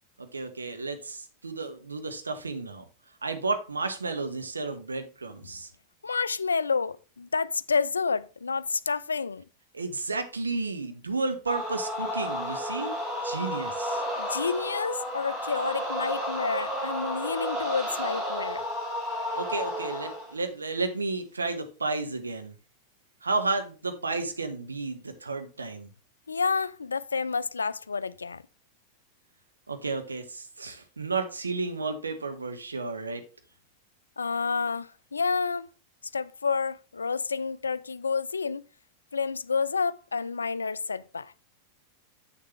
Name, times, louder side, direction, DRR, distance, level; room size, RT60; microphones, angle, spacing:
voice 1, 0.2-2.8 3.2-5.7 9.7-12.9 13.2-14.0 19.3-22.5 23.2-25.9 29.7-33.2, right 3 dB, 75° right, 1.0 m, -32 dB
voice 2, 6.0-9.4 14.2-18.6 26.3-28.4 34.2-35.7 36.1-38.6 39.1-41.3, left 5 dB, 75° left, 0.3 m, -29 dB
sound 1, 11.5-20.3, equal, 30° right, 3.8 m, -32 dB
7.3 x 6.6 x 3.2 m
figure-of-eight pair, 90°, 0 cm